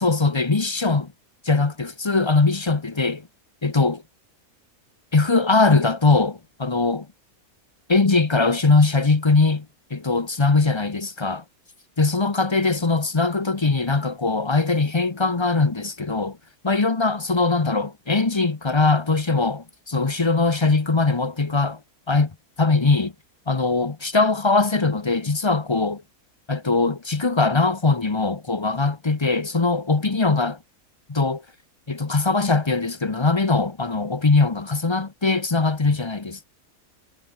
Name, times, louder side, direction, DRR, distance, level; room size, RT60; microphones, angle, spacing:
voice 1, 0.0-1.1 1.4-3.2 3.6-4.0 5.1-7.1 7.9-9.7 9.9-11.4 12.0-16.4 16.6-21.8 22.1-22.3 22.6-23.1 23.5-26.0 26.5-30.6 31.1-31.4 31.9-36.5, left 3 dB, 25° left, 0.8 m, -21 dB
omnidirectional pair, 1.6 m